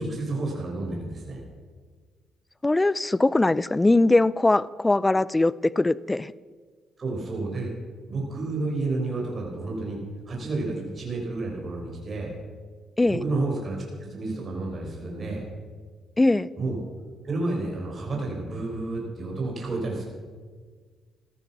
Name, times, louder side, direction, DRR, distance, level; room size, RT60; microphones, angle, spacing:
voice 1, 0.0-1.4 7.0-7.7 8.1-10.0 10.3-12.3 13.1-15.4 16.6-16.8 17.2-20.0, right 2 dB, 40° right, -1 dB, 5.7 m, -30 dB
voice 2, 2.6-6.3 13.0-13.2 16.2-16.5, left 2 dB, 15° left, 20 dB, 0.4 m, -21 dB
16.0 x 13.5 x 6.0 m, 1.5 s
cardioid pair, 90°, 0 cm